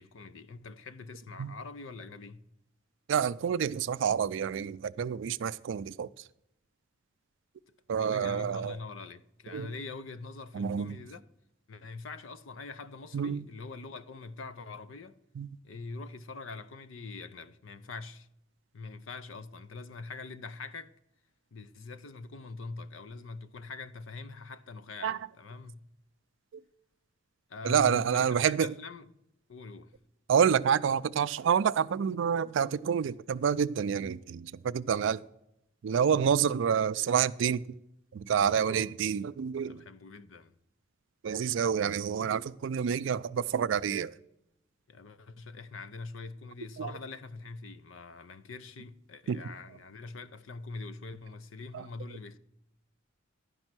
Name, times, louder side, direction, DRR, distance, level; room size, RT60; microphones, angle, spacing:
voice 1, 0.0-2.5 8.0-11.2 11.7-15.2 15.6-18.3 18.7-20.9 21.5-25.9 27.5-29.1 29.5-29.9 36.1-36.3 38.5-38.9 39.6-40.6 44.9-52.4, left 3 dB, 75° left, 0.6 m, -44 dB
voice 2, 3.1-6.1 7.9-8.8 9.5-9.7 10.5-11.0 13.1-13.5 15.4-15.5 25.0-25.2 26.5-26.6 27.6-28.7 30.3-35.2 35.8-37.6 38.1-39.8 41.2-44.1 46.8-46.9 49.3-49.4 51.7-51.8, right 7 dB, 65° right, 0.3 m, -28 dB
11.0 x 5.4 x 6.0 m
head